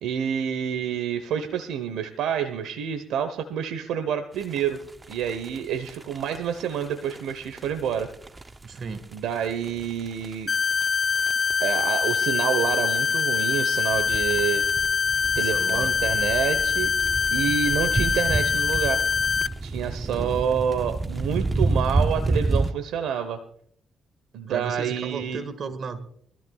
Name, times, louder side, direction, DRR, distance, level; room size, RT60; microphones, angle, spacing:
voice 1, 0.0-4.8 5.1-8.1 9.1-10.5 11.6-14.6 15.3-16.9 17.3-19.0 19.6-23.4 24.3-25.4, right 8 dB, 90° right, 8 dB, 1.0 m, -28 dB
sound 1, 4.4-22.7, right 2 dB, 25° right, 0.7 m, -30 dB
voice 2, 8.6-9.2 15.4-15.9 20.0-20.5 24.4-26.0, right 4 dB, 50° right, 11 dB, 1.7 m, -35 dB
sound 2, 10.5-19.5, left 6 dB, 35° left, 0.5 m, -24 dB
23.5 x 14.0 x 2.4 m, 0.64 s
cardioid pair, 95°, 0 cm